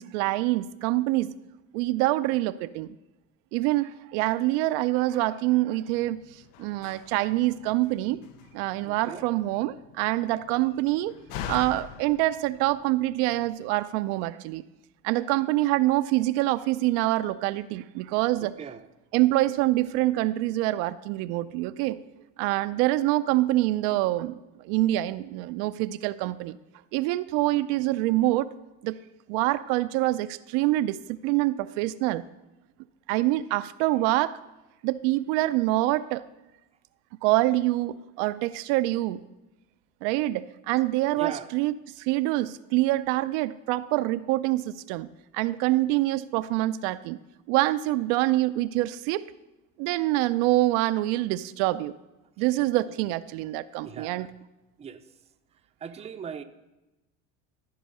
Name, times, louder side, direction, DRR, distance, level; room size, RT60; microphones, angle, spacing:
voice 1, 0.0-1.3 1.7-2.9 3.5-6.2 6.6-8.2 8.5-11.1 11.5-14.6 15.0-18.5 19.1-22.0 22.4-24.4 24.6-26.6 26.9-28.5 28.8-29.0 29.3-32.2 33.1-34.4 34.8-36.2 37.2-39.2 40.0-45.1 45.3-47.2 47.5-49.2 49.8-51.9 52.4-54.3, right 17 dB, 70° right, 0.5 m, -25 dB
Slam, 5.9-13.5, left 9 dB, 75° left, 0.7 m, -44 dB
voice 2, 8.8-9.3 18.4-18.9 41.1-41.5 53.8-54.3 54.8-55.0 55.8-56.4, right 7 dB, 20° right, 0.5 m, -38 dB
13.5 x 4.5 x 5.3 m
supercardioid pair, 105°, 36 cm